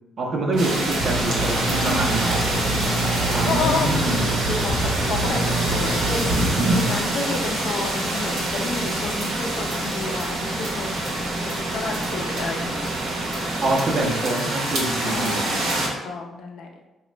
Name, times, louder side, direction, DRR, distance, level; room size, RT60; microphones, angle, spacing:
voice 1, 0.2-2.4 3.3-4.2 6.6-6.9 13.6-15.4, right 2 dB, 55° right, 0 dB, 0.7 m, -25 dB
sound 1, 0.5-14.1, right 2 dB, 20° right, 0.3 m, -33 dB
sound 2, 0.6-15.9, right 1 dB, 85° right, 0.9 m, -26 dB
sound 3, 1.0-6.9, right 1 dB, 40° right, 1.0 m, -27 dB
voice 2, 1.7-2.3 2.6-12.9 15.0-16.7, left 4 dB, 70° left, 2 dB, 0.5 m, -31 dB
3.9 x 2.3 x 3.1 m, 1.0 s
cardioid pair, 90°, 0 cm